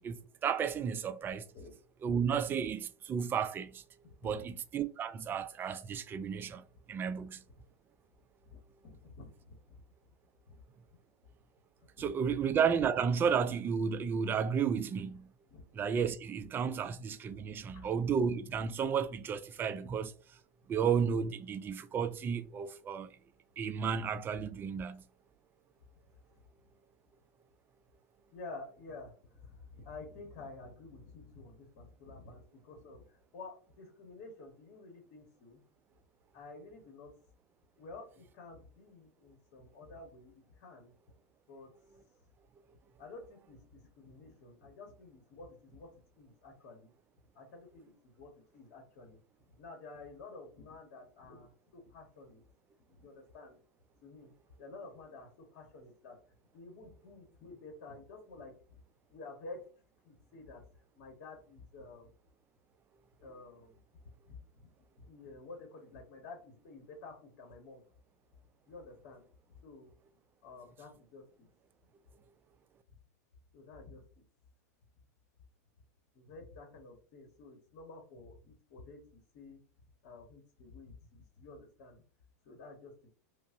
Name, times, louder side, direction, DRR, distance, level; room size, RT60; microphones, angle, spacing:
voice 1, 0.0-1.4 2.0-3.8 4.2-7.4 12.0-15.3 15.7-20.1 20.7-23.1 23.6-25.0, right 7 dB, 25° right, 0.3 m, -33 dB
voice 2, 4.0-4.5 7.1-7.3 8.5-8.6 8.8-9.8 10.5-10.6 12.3-12.4 15.5-15.6 17.5-17.9 28.3-35.6 36.3-37.1 37.8-40.9 41.5-41.7 43.0-46.9 47.3-49.2 49.6-52.4 52.9-53.6 54.0-54.3 54.6-56.2 56.5-58.6 59.1-59.7 60.0-60.6 61.0-62.1 63.2-63.7 64.3-64.7 65.0-67.8 68.7-69.2 69.6-69.9 70.4-71.5 73.5-74.0 76.1-79.6 80.0-82.0 82.4-82.9, left 3 dB, 55° left, 1.1 m, -51 dB
5.1 x 2.0 x 2.5 m
hypercardioid pair, 105°, 9 cm